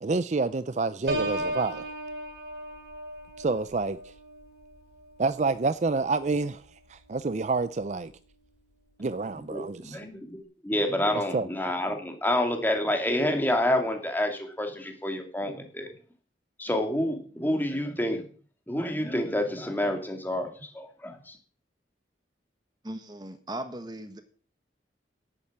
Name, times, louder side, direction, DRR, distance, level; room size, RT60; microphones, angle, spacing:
voice 1, 0.0-1.9 3.4-4.1 5.2-6.6 6.9-8.1 9.0-10.0 11.3-11.5, right 3 dB, 40° right, 0.5 m, -28 dB
Piano, 1.1-6.7 7.2-7.5, right 1 dB, 65° right, 4.2 m, -37 dB
voice 2, 9.5-15.9 16.6-18.2 18.7-21.4, left 1 dB, 10° left, 2.5 m, -28 dB
voice 3, 22.8-24.2, right 1 dB, 25° right, 1.3 m, -38 dB
11.0 x 8.7 x 7.4 m
head